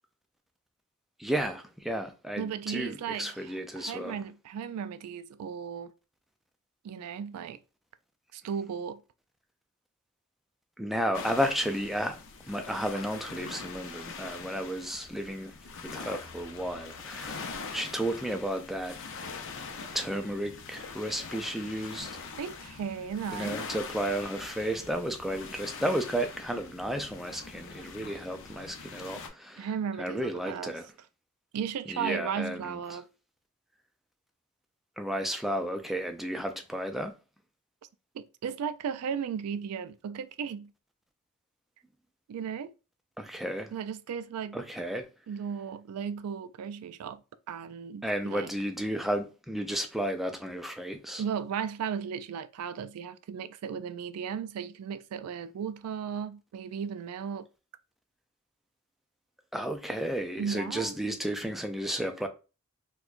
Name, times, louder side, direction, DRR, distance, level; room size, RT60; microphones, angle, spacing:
voice 1, 1.2-4.2 10.8-12.2 12.5-15.5 15.8-19.0 19.9-22.1 23.3-29.7 30.0-30.9 31.9-32.7 35.0-37.1 43.2-43.7 44.5-45.0 48.0-51.2 59.5-62.3, equal, ahead, 0.3 m, -33 dB
voice 2, 2.4-5.9 6.8-7.6 8.3-9.0 22.4-23.6 29.6-30.7 31.5-33.0 38.1-40.7 42.3-42.7 43.7-44.6 45.3-47.2 47.5-48.5 51.2-57.5 60.4-61.0, right 7 dB, 90° right, 0.3 m, -35 dB
sound 1, 11.1-29.3, left 5 dB, 60° left, 0.5 m, -43 dB
4.3 x 2.2 x 2.4 m
head